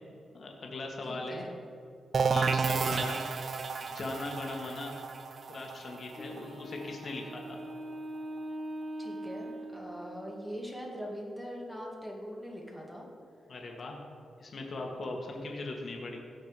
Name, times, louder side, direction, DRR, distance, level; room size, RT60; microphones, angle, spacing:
voice 1, 0.3-1.5 2.3-3.3 3.8-5.0 5.5-7.6 13.5-14.0 14.4-16.2, left 2 dB, 50° left, 1 dB, 1.9 m, -39 dB
voice 2, 1.0-1.5 9.0-13.1, equal, 5° right, -2 dB, 2.1 m, -42 dB
sound 1, 2.1-7.7, right 5 dB, 50° right, 0.5 m, -32 dB
Wind instrument woodwind instrument, 6.2-10.3, right 1 dB, 15° left, 1.9 m, -41 dB
17.0 x 5.9 x 4.9 m, 2.5 s
cardioid pair, 110°, 0 cm